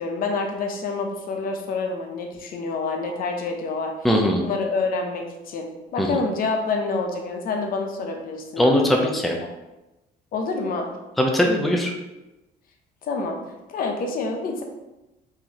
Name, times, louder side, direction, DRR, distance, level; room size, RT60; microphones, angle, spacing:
voice 1, 0.0-3.9 4.4-9.2 10.3-10.9 13.0-13.4 13.7-14.6, left 3 dB, 60° left, 3 dB, 0.7 m, -27 dB
voice 2, 4.0-4.4 6.0-6.2 8.6-9.4 11.2-11.9, equal, ahead, 1 dB, 0.5 m, -20 dB
4.9 x 2.7 x 2.9 m, 0.99 s
cardioid pair, 110°, 17 cm